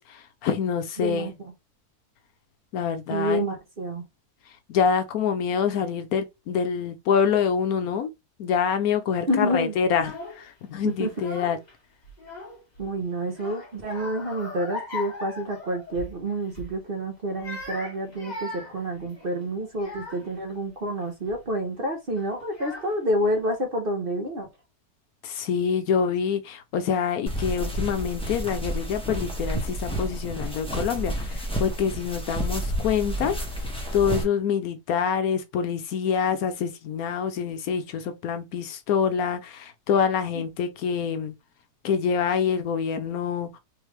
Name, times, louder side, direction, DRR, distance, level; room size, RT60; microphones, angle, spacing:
voice 1, 0.0-1.3 2.7-3.4 4.7-8.1 8.4-11.6 25.2-33.4 33.9-41.3 41.8-43.6, left 7 dB, 75° left, 1.0 m, -26 dB
voice 2, 1.0-1.3 3.1-4.1 9.3-9.7 10.8-11.1 12.8-24.5 40.3-40.4, right 1 dB, 40° right, 1.0 m, -28 dB
Child speech kid speaking / Crying sobbing, 9.9-10.4 11.0-11.7 12.0-12.9 13.3-16.2 16.5-16.8 17.3-20.4 21.0-21.4 22.2-22.3 22.5-23.2, left 3 dB, 30° left, 1.2 m, -39 dB
sound 1, 27.3-34.2, right 1 dB, 5° left, 1.0 m, -30 dB
3.5 x 3.3 x 3.1 m
omnidirectional pair, 1.7 m